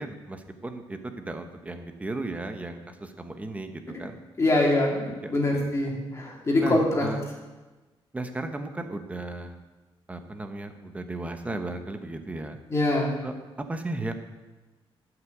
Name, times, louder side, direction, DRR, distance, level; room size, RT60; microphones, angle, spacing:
voice 1, 0.0-4.2 5.2-5.6 6.6-7.2 8.1-9.6 10.1-12.6 13.2-13.3 13.7-14.1, right 2 dB, 15° right, 6 dB, 1.0 m, -35 dB
voice 2, 4.4-7.1 12.7-13.1, left 2 dB, 30° left, -3 dB, 2.9 m, -24 dB
11.5 x 6.0 x 7.9 m, 1.2 s
cardioid pair, 145°, 10 cm